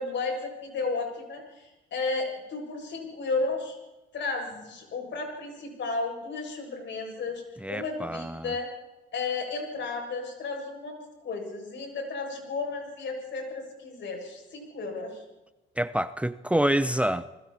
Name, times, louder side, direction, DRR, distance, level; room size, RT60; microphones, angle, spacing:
voice 1, 0.0-3.8 4.1-7.4 7.7-8.7 9.1-11.0 11.2-15.2, left 3 dB, 65° left, 2 dB, 7.4 m, -33 dB
voice 2, 7.6-8.6 15.8-17.3, right 1 dB, 5° right, 13 dB, 0.8 m, -27 dB
29.5 x 20.5 x 4.4 m, 1.0 s
cardioid pair, 90°, 20 cm